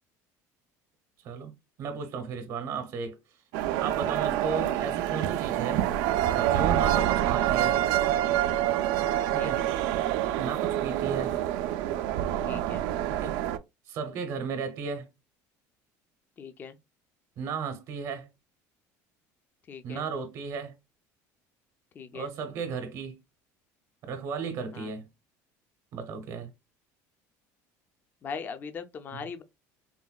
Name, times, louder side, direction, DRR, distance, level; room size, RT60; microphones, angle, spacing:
voice 1, 1.2-3.2 3.8-5.9 6.3-7.8 9.3-9.6 10.4-11.4 13.1-13.4 13.9-15.1 17.4-18.3 19.8-20.7 22.1-23.2 24.0-25.1 25.9-26.5 29.1-29.2, right 5 dB, 55° right, 0.7 m, -35 dB
sound 1, 3.5-13.6, right 12 dB, 75° right, 0.3 m, -27 dB
voice 2, 12.5-12.8 16.4-16.8 19.7-20.0 21.9-22.3 24.7-24.9 28.2-29.4, left 6 dB, 30° left, 0.4 m, -40 dB
3.8 x 2.1 x 2.3 m
cardioid pair, 140°, 7 cm